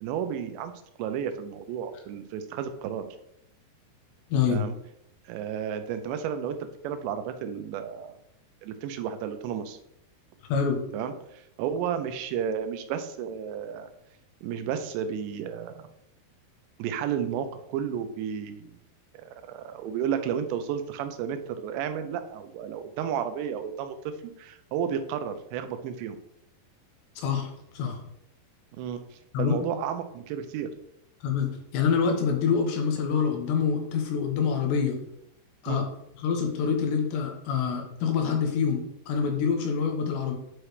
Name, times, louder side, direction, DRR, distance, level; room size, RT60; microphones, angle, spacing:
voice 1, 0.0-0.7 1.0-3.0 4.5-4.7 5.3-6.6 6.8-8.1 8.6-9.8 10.9-13.9 14.4-15.8 16.8-18.8 19.2-24.0 24.2-26.2 28.7-29.0 29.4-30.7 35.7-35.9, right 8 dB, 90° right, 8 dB, 2.9 m, -32 dB
voice 2, 4.3-4.6 10.5-10.8 27.2-28.0 29.3-29.8 31.2-35.0 35.6-35.8 36.2-40.3, left 6 dB, 85° left, 2 dB, 3.3 m, -26 dB
8.5 x 4.8 x 3.2 m, 0.78 s
omnidirectional pair, 5.0 m